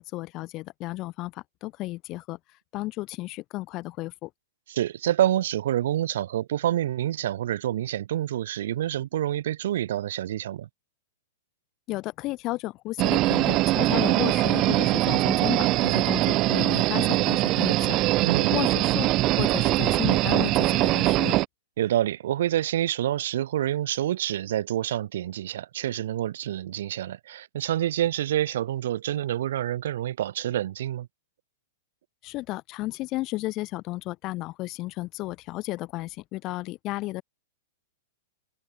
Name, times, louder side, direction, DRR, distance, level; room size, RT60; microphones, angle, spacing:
voice 1, 0.0-2.4 2.7-4.3 11.9-18.0 18.5-21.4 32.2-37.2, left 19 dB, 40° left, 1.7 m, -33 dB
voice 2, 4.7-10.7 18.2-18.5 21.8-31.1, right 12 dB, 65° right, 3.6 m, -27 dB
sound 1, 13.0-21.5, right 18 dB, 40° right, 2.7 m, -22 dB
hypercardioid pair, 115°, 0 cm